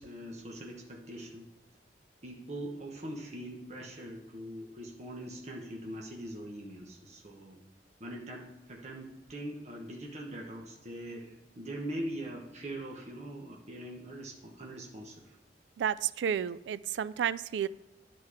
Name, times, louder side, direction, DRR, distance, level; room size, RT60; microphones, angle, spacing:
voice 1, 0.0-1.5 2.2-7.6 8.0-15.4, right 1 dB, 40° right, -1 dB, 1.0 m, -42 dB
voice 2, 15.8-17.7, right 8 dB, 85° right, 17 dB, 0.3 m, -31 dB
10.5 x 4.3 x 4.8 m, 1.1 s
head